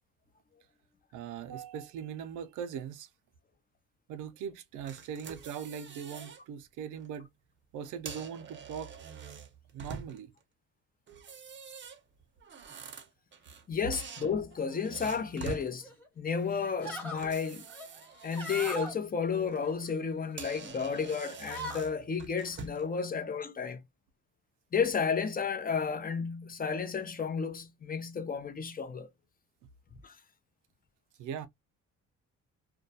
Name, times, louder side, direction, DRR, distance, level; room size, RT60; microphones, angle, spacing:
voice 1, 1.1-3.1 4.1-7.3 7.7-8.9 9.7-10.3 31.2-31.5, right 8 dB, 85° right, 0.5 m, -40 dB
sound 1, 4.9-6.4 6.8-7.1 7.8-10.4 11.1-13.6 13.9-15.7 17.2-19.0 19.4-19.6 20.1-20.2 20.4-22.9, right 6 dB, 40° right, 0.6 m, -45 dB
voice 2, 13.7-15.9 16.2-17.6 18.2-23.8 24.7-29.1 30.0-30.1, left 6 dB, 30° left, 0.5 m, -32 dB
sound 2, 15.8-16.1 16.5-17.2 17.7-18.9 19.5-20.4 20.8-21.0 21.2-21.9, right 1 dB, 5° left, 1.0 m, -41 dB
2.2 x 2.2 x 2.6 m
cardioid pair, 90°, 30 cm